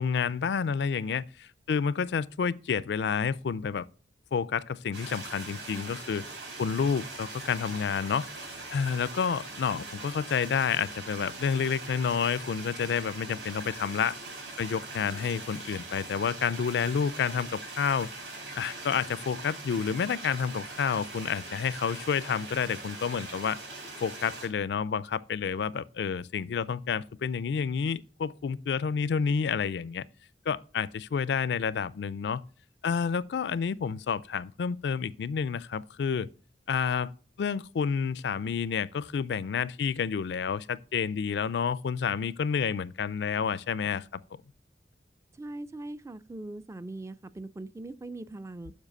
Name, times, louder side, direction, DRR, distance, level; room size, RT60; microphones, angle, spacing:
voice 1, 0.0-3.9 4.3-6.2 6.6-8.3 8.7-14.2 14.6-18.1 18.6-23.6 24.0-30.0 30.5-32.4 32.8-36.3 36.7-37.1 37.4-44.2, left 6 dB, 70° left, 0.4 m, -29 dB
sound 1, 4.9-24.5, right 3 dB, 85° right, 4.2 m, -42 dB
voice 2, 45.3-48.7, right 2 dB, 15° right, 0.3 m, -41 dB
7.4 x 4.7 x 6.4 m
head